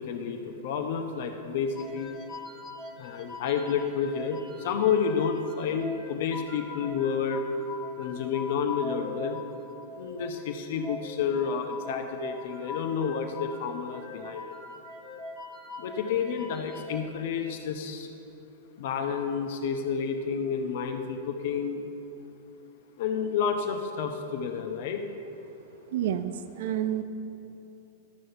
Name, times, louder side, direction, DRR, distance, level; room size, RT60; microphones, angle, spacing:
voice 1, 0.0-2.1 3.0-7.4 8.0-9.4 9.9-14.4 15.8-18.1 18.8-21.9 23.0-25.0, left 6 dB, 60° left, 5 dB, 0.9 m, -30 dB
sound 1, 1.8-17.1, left 2 dB, 30° left, 1.4 m, -42 dB
voice 2, 25.9-27.0, right 10 dB, 65° right, 8 dB, 0.5 m, -29 dB
13.0 x 6.4 x 6.9 m, 2.9 s
hypercardioid pair, 120°, 0 cm